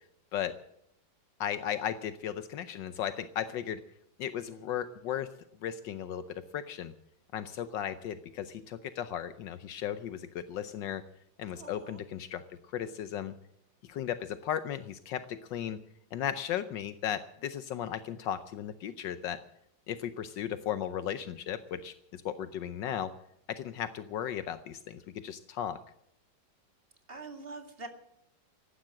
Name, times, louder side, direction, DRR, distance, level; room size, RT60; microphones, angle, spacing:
voice 1, 1.4-3.8 4.2-5.3 5.6-6.2 6.5-6.9 7.3-11.0 11.4-12.4 12.7-13.3 13.9-15.8 16.1-19.4 19.9-23.1 23.5-25.8, left 10 dB, 75° left, 12 dB, 1.4 m, -36 dB
voice 2, 11.5-12.0 27.1-27.9, right 3 dB, 30° right, 6 dB, 2.3 m, -44 dB
15.5 x 11.5 x 7.6 m, 0.77 s
omnidirectional pair, 2.0 m